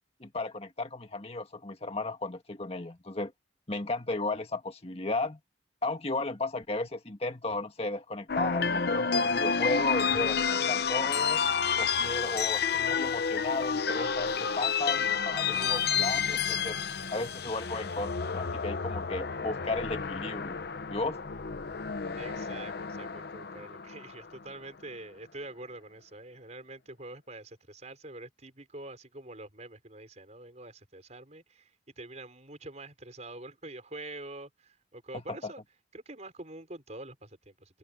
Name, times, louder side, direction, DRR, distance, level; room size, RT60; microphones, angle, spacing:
voice 1, 0.2-3.3 3.7-5.4 5.8-11.5 11.8-16.8 17.1-20.6 20.9-21.2 35.3-35.4, left 2 dB, 30° left, 1.7 m, -34 dB
sound 1, 8.3-24.5, left 6 dB, 55° left, 0.7 m, -30 dB
voice 2, 22.2-35.6 35.9-37.8, right 2 dB, 35° right, 5.3 m, -46 dB
head